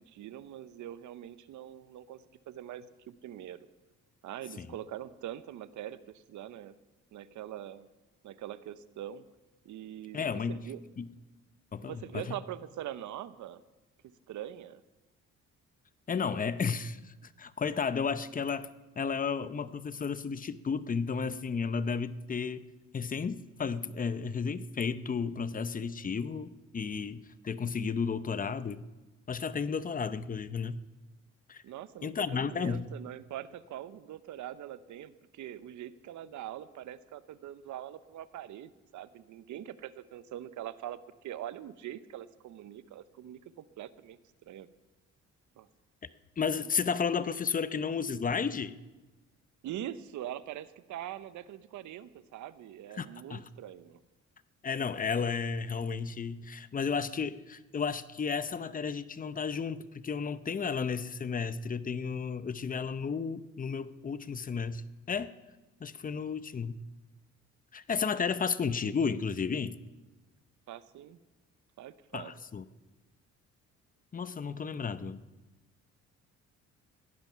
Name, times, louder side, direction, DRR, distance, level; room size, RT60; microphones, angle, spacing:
voice 1, 0.0-3.7 4.2-6.7 7.1-7.9 8.2-9.2 9.6-10.8 11.8-13.6 14.3-14.8 31.6-44.2 44.5-44.7 45.6-45.7 49.6-54.0 70.7-71.2 71.8-72.3, right 11 dB, 75° right, 15 dB, 0.8 m, -43 dB
voice 2, 10.1-10.6 11.0-11.1 11.7-12.3 16.1-18.7 19.0-22.6 22.9-28.8 29.3-30.8 31.5-31.6 32.0-32.9 46.4-48.8 53.0-53.4 54.6-64.8 65.1-65.3 65.8-66.8 67.7-69.8 72.1-72.6 74.1-75.2, left 5 dB, 30° left, 14 dB, 0.7 m, -33 dB
17.0 x 10.5 x 5.8 m, 1.1 s
cardioid pair, 90°, 30 cm